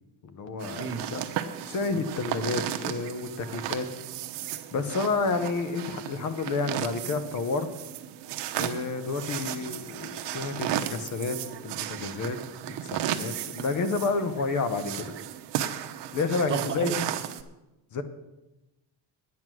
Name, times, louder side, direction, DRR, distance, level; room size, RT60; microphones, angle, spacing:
voice 1, 0.2-1.2 1.7-3.9 4.7-7.7 8.6-11.4 11.6-12.4 12.7-15.1 16.1-16.9 17.9-18.0, left 4 dB, 40° left, 10 dB, 0.9 m, -30 dB
sound 1, 0.6-17.4, right 11 dB, 65° right, 0.9 m, -35 dB
voice 2, 0.8-1.3 9.5-9.7 16.5-17.0, right 6 dB, 25° right, 4 dB, 1.1 m, -32 dB
9.6 x 9.4 x 6.2 m, 0.99 s
cardioid pair, 175°, 46 cm